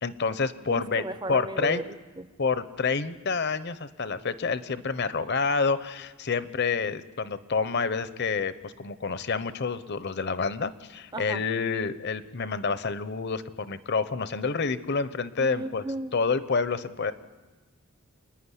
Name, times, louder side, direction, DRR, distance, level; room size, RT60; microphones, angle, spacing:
voice 1, 0.0-1.8 2.4-15.9 16.1-17.1, left 4 dB, 50° left, 13 dB, 0.8 m, -28 dB
voice 2, 0.7-2.3 11.1-11.4 15.4-16.2, right 2 dB, 20° right, 13 dB, 0.6 m, -35 dB
28.5 x 10.0 x 9.9 m, 1.3 s
head